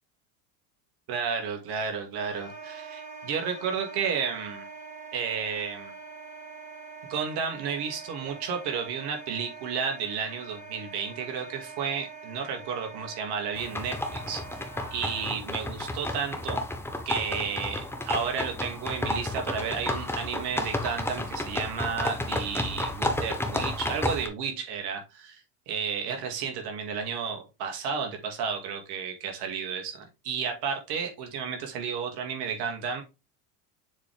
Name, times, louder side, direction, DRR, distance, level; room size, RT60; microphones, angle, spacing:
voice 1, 1.1-4.7 5.1-5.9 7.1-14.4 14.9-16.6 17.1-30.0 30.2-33.0, right 6 dB, 60° right, 3 dB, 2.2 m, -32 dB
Wind instrument woodwind instrument, 2.2-15.2, right 4 dB, 15° right, 3.0 m, -44 dB
sound 1, 13.5-24.3, left 1 dB, 5° left, 1.2 m, -32 dB
7.3 x 4.2 x 3.4 m, 0.27 s
supercardioid pair, 95°, 45 cm